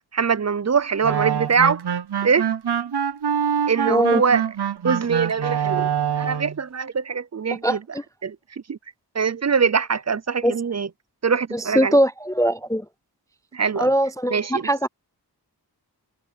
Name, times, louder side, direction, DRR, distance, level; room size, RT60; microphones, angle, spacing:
voice 1, 0.1-1.8 2.2-2.5 3.7-4.4 4.8-7.8 8.2-8.8 9.1-10.9 11.2-12.0 13.5-13.9 14.3-14.9, right 6 dB, 40° right, 0.5 m, -23 dB
sound 1, 1.0-6.6, right 8 dB, 70° right, 0.8 m, -25 dB
voice 2, 3.9-4.2 7.6-7.8 10.4-10.6 11.5-12.8 13.8-14.9, equal, 10° left, 0.3 m, -21 dB
wide cardioid pair, 85°, 41 cm